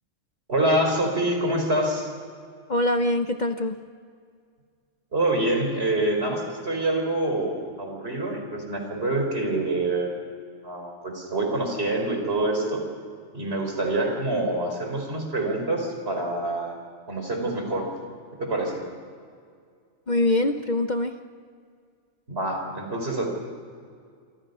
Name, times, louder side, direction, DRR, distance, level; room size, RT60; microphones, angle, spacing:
voice 1, 0.5-2.1 5.1-10.1 10.6-12.8 13.3-16.7 17.1-17.9 18.3-18.8 22.3-23.3, right 1 dB, 55° right, 2 dB, 4.7 m, -26 dB
voice 2, 2.7-3.8 20.1-21.1, left 1 dB, 40° left, 7 dB, 0.9 m, -23 dB
27.0 x 26.0 x 5.5 m, 2.2 s
omnidirectional pair, 1.3 m